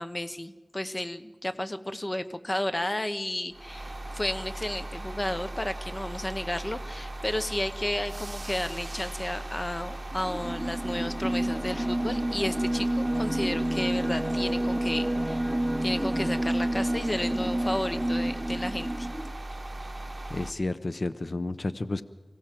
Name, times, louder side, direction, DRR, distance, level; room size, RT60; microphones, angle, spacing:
voice 1, 0.0-15.5 15.8-19.1, left 1 dB, 35° left, 10 dB, 0.9 m, -32 dB
sound 1, 3.5-20.5, right 1 dB, 35° right, 1.1 m, -38 dB
sound 2, 10.1-19.3, right 1 dB, 5° right, 0.9 m, -29 dB
voice 2, 20.3-22.0, left 2 dB, 55° left, 12 dB, 0.8 m, -31 dB
25.0 x 16.5 x 7.6 m, 1.1 s
wide cardioid pair, 60°, 0 cm